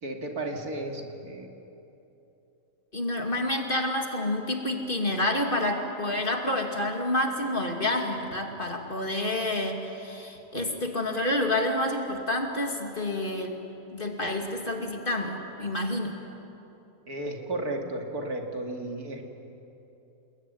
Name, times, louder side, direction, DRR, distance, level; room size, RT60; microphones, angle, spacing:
voice 1, 0.0-1.5 17.1-19.3, right 1 dB, 70° right, 2 dB, 3.1 m, -34 dB
voice 2, 2.9-13.5 13.9-16.2, left 1 dB, 35° left, 3 dB, 2.6 m, -28 dB
29.5 x 21.0 x 9.5 m, 3.0 s
omnidirectional pair, 1.7 m